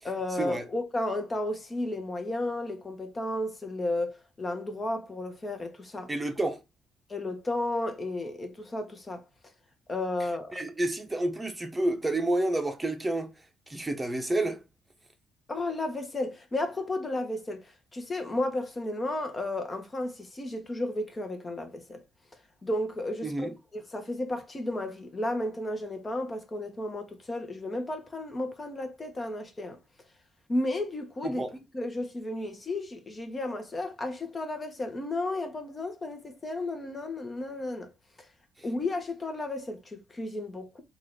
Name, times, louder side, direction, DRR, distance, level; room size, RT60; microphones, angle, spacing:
voice 1, 0.0-6.1 7.1-9.2 9.9-10.6 15.5-22.0 22.6-29.8 30.5-31.5 31.7-37.9 38.6-40.8, left 2 dB, 30° left, 1.1 m, -33 dB
voice 2, 6.1-6.6 10.2-13.3 13.7-14.6 23.2-23.6 31.2-31.5, right 2 dB, 15° right, 0.9 m, -30 dB
3.9 x 2.6 x 3.2 m
cardioid pair, 90°, 0 cm